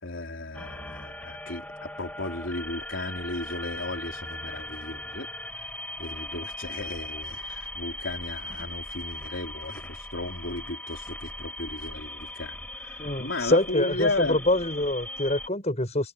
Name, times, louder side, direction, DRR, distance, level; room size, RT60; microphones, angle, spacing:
voice 1, 0.0-5.7 6.0-14.4, left 2 dB, 65° left, 4.5 m, -34 dB
sound 1, 0.5-15.5, left 1 dB, 10° left, 5.9 m, -39 dB
voice 2, 13.0-16.1, left 1 dB, 35° left, 6.1 m, -25 dB
head